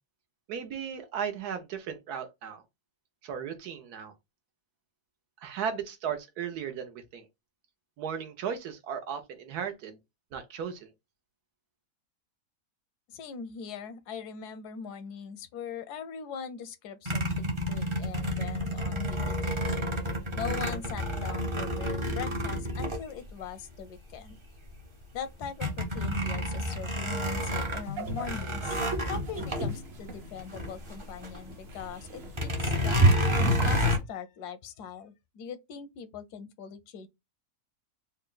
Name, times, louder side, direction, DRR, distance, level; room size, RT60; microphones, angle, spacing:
voice 1, 0.5-2.6 3.2-4.1 5.4-7.2 8.0-10.0 10.3-10.9, right 7 dB, 80° right, 1.4 m, -36 dB
voice 2, 13.1-19.6 20.4-24.4 25.1-28.8 29.1-33.1 33.6-37.1, left 7 dB, 85° left, 1.2 m, -41 dB
sound 1, 17.1-23.7 24.3-24.4 24.7-31.4 31.7-31.8 32.3-34.0, equal, 30° right, 0.5 m, -30 dB
sound 2, 27.5-34.0, right 1 dB, 50° right, 0.9 m, -31 dB
3.9 x 2.2 x 3.8 m
omnidirectional pair, 1.7 m